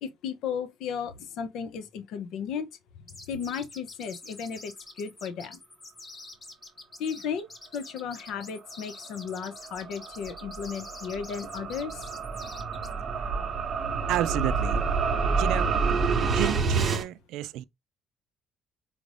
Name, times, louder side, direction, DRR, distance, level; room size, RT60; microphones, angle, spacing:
voice 1, 0.0-2.7 3.3-4.7 5.0-5.6 7.0-7.5 7.7-12.0, left 7 dB, 70° left, 0.6 m, -34 dB
sound 1, 3.1-12.9, left 2 dB, 20° left, 0.8 m, -46 dB
sound 2, 9.2-17.0, right 4 dB, 30° right, 0.8 m, -28 dB
voice 2, 14.1-14.9 15.3-15.7 16.3-17.6, right 14 dB, 85° right, 0.3 m, -31 dB
5.0 x 2.5 x 3.2 m
cardioid pair, 170°, 0 cm